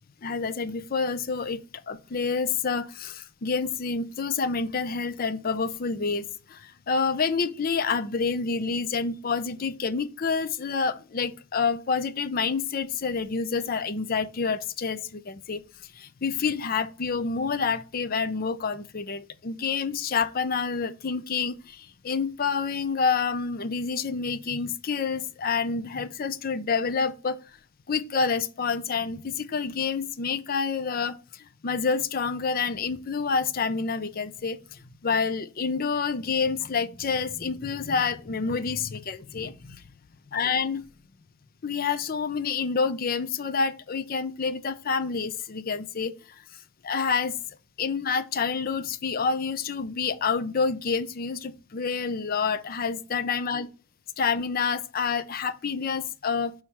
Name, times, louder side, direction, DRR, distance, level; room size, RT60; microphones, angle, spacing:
voice 1, 0.2-15.6 15.9-27.4 27.9-39.8 40.3-40.8 41.6-46.4 46.8-47.4 47.8-53.7 54.2-56.5, left 5 dB, 45° left, 0.5 m, -28 dB
6.2 x 3.1 x 5.6 m
head